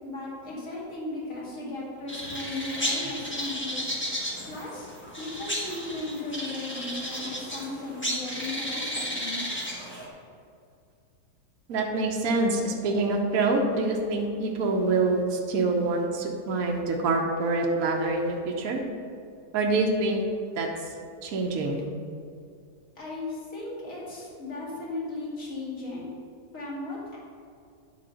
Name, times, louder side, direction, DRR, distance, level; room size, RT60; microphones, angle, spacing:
voice 1, 0.0-3.9 4.5-4.9 5.2-9.4 23.0-26.1 26.5-27.2, left 2 dB, 50° left, -6 dB, 2.6 m, -36 dB
sound 1, 2.1-10.1, equal, 10° left, 1.0 m, -33 dB
voice 2, 11.7-18.8 19.5-20.2 20.6-20.7 21.2-21.8, right 3 dB, 65° right, 0 dB, 1.3 m, -26 dB
10.5 x 3.8 x 6.3 m, 2.4 s
omnidirectional pair, 1.7 m